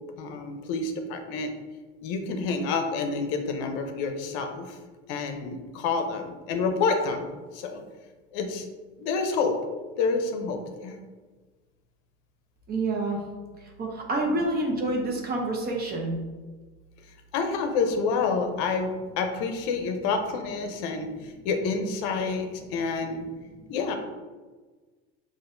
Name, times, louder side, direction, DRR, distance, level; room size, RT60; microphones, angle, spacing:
voice 1, 0.2-1.5 2.0-4.8 5.1-7.3 7.5-7.8 8.3-8.7 9.0-9.6 10.0-11.0 14.3-14.4 17.3-23.3 23.7-23.9, left 4 dB, 70° left, 5 dB, 0.7 m, -28 dB
voice 2, 12.7-13.2 13.6-16.2 23.6-23.7, right 2 dB, 30° right, 0 dB, 0.8 m, -28 dB
6.2 x 2.5 x 2.6 m, 1.3 s
cardioid pair, 130°, 31 cm